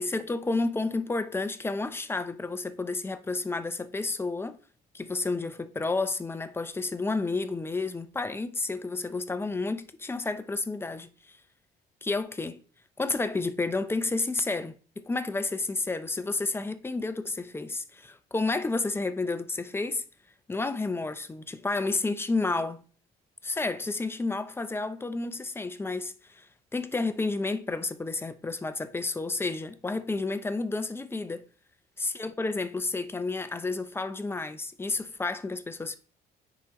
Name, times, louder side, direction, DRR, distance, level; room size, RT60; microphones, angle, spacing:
voice 1, 0.0-4.6 4.9-11.4 12.0-12.6 13.0-20.0 20.5-22.8 23.4-31.4 32.0-36.0, left 3 dB, 15° left, 0.6 m, -31 dB
9.6 x 4.9 x 3.0 m
cardioid pair, 110°, 17 cm